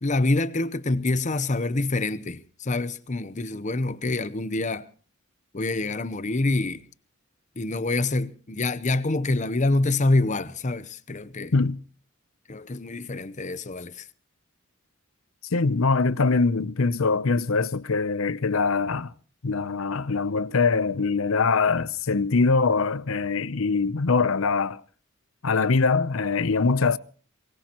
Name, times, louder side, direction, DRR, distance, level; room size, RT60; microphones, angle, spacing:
voice 1, 0.0-4.9 5.5-6.8 7.6-11.5 12.5-13.9, left 2 dB, 35° left, 0.8 m, -26 dB
voice 2, 15.5-19.1 19.4-24.8 25.4-27.0, left 4 dB, 70° left, 0.7 m, -23 dB
23.5 x 20.5 x 3.0 m
head